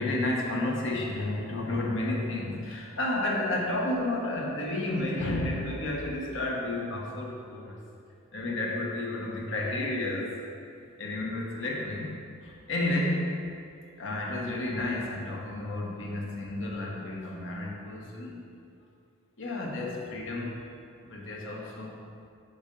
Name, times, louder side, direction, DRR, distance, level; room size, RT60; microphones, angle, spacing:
voice 1, 0.0-7.9 8.3-10.3 10.8-12.1 12.4-13.4 14.0-18.4 19.4-20.6 21.0-22.0, left 1 dB, 60° left, -1 dB, 1.0 m, -31 dB
5.4 x 5.2 x 5.2 m, 2.5 s
head